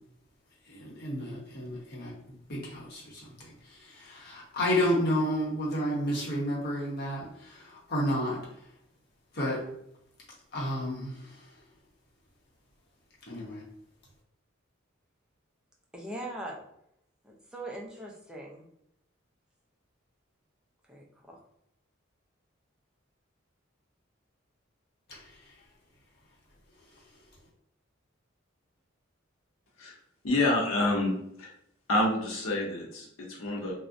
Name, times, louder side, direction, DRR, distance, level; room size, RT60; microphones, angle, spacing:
voice 1, 0.7-2.1 2.5-3.3 3.8-8.4 9.3-9.6 10.5-11.1 13.3-13.6 25.1-25.2, equal, 50° left, -5 dB, 0.8 m, -31 dB
voice 2, 15.9-16.6 17.2-18.7 20.9-21.4, right 1 dB, 5° right, -2 dB, 0.3 m, -41 dB
voice 3, 30.2-31.5 31.9-33.7, left 2 dB, 85° left, -2 dB, 0.7 m, -28 dB
2.5 x 2.0 x 2.4 m, 0.76 s
head